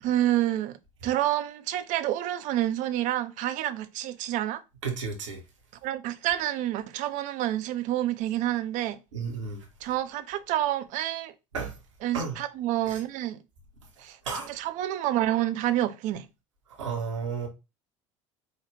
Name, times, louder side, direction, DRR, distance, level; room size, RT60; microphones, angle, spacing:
voice 1, 0.0-0.8 1.0-4.6 5.8-9.0 9.8-11.3 12.0-13.4 14.0-16.3, right 13 dB, 55° right, 0.6 m, -28 dB
voice 2, 4.8-5.4 9.1-9.7 11.5-11.7 12.1-12.4 12.9-13.0 14.2-14.5 16.7-17.5, right 5 dB, 80° right, 1.1 m, -32 dB
4.9 x 2.4 x 3.1 m
hypercardioid pair, 65°, 16 cm